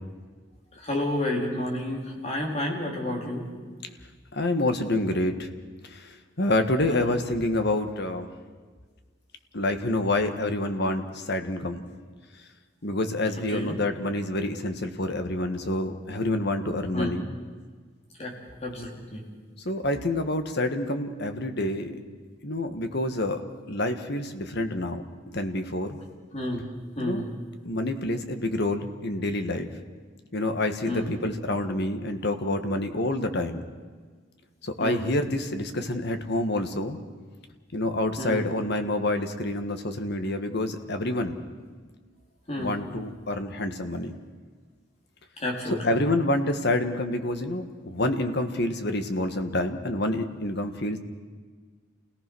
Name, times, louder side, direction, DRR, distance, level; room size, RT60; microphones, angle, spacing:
voice 1, 0.8-3.5 6.9-7.2 13.5-13.8 16.9-17.1 18.2-18.3 18.6-19.2 26.3-26.6 27.0-27.3 30.8-31.1 34.8-35.0 38.2-38.5 42.5-42.7 45.4-45.8, left 1 dB, 35° left, 0 dB, 4.1 m, -30 dB
voice 2, 4.3-5.5 5.8-8.3 9.5-11.9 12.8-17.3 19.6-22.0 22.4-23.4 23.7-26.0 27.0-27.2 27.6-29.7 30.3-33.6 34.6-37.0 37.7-41.4 42.6-44.2 45.6-51.0, left 1 dB, 55° left, 7 dB, 1.7 m, -28 dB
28.5 x 18.0 x 6.3 m, 1.5 s
head